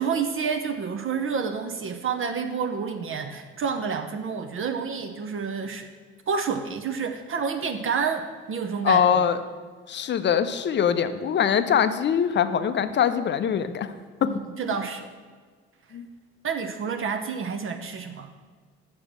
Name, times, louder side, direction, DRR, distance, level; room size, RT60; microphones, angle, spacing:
voice 1, 0.0-5.9 6.3-8.2 8.5-9.1 14.2-15.1 16.4-18.3, right 6 dB, 35° right, 6 dB, 0.7 m, -29 dB
voice 2, 8.8-9.4 9.9-13.9 14.2-14.3 15.9-16.1, left 8 dB, 30° left, 11 dB, 0.6 m, -23 dB
6.3 x 6.0 x 6.2 m, 1.5 s
figure-of-eight pair, 50°, 34 cm